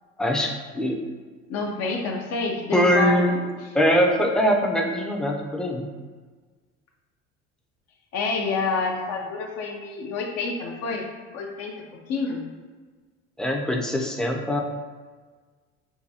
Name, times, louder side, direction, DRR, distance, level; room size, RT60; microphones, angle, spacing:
voice 1, 0.2-1.0 2.7-3.4 3.7-5.9 13.4-14.6, equal, ahead, 0 dB, 0.5 m, -22 dB
voice 2, 1.5-3.3 8.1-11.1 11.3-12.4, left 4 dB, 60° left, 0 dB, 0.6 m, -28 dB
4.7 x 2.2 x 2.7 m, 1.4 s
supercardioid pair, 90°, 30 cm